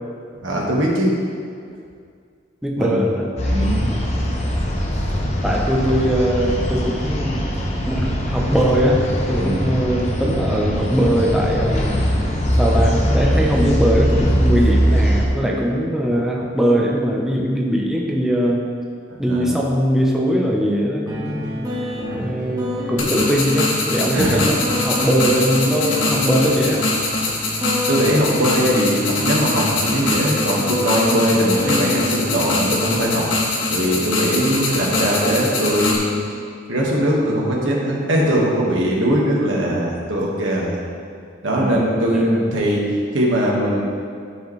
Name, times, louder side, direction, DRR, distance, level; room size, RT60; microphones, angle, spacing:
voice 1, 0.4-1.1 2.7-3.0 3.5-4.0 4.9-5.0 9.4-9.7 19.1-19.6 22.1-22.3 24.1-24.6 27.9-33.3 33.7-36.2 36.7-40.8 41.4-43.8, equal, 80° right, -3 dB, 1.6 m, -20 dB
voice 2, 2.6-3.5 5.4-7.4 7.9-12.0 12.6-18.7 19.2-21.7 22.1-26.9 41.6-42.5, equal, ahead, -2 dB, 0.6 m, -21 dB
sound 1, 3.4-15.3, equal, 35° left, 0.9 m, -21 dB
sound 2, 21.1-36.1, left 2 dB, 20° right, 1.1 m, -30 dB
sound 3, 23.0-36.0, left 2 dB, 85° left, 1.3 m, -23 dB
13.0 x 4.9 x 3.2 m, 2.3 s
head